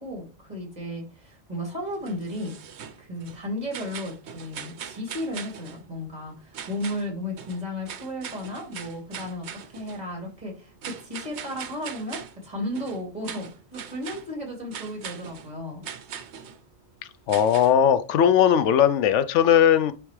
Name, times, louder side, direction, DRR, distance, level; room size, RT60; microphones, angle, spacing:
voice 1, 0.0-2.5 3.0-15.9, left 1 dB, 35° right, 2.5 m, -34 dB
sound 1, 1.9-3.4 3.7-5.8 6.5-7.1 7.4-10.0 10.8-12.4 12.7-14.3 14.7-15.5 15.8-16.6 17.3-17.8, right 8 dB, 70° right, 1.0 m, -40 dB
voice 2, 17.3-19.9, left 9 dB, 85° left, 0.9 m, -18 dB
10.0 x 3.4 x 3.1 m
omnidirectional pair, 1.2 m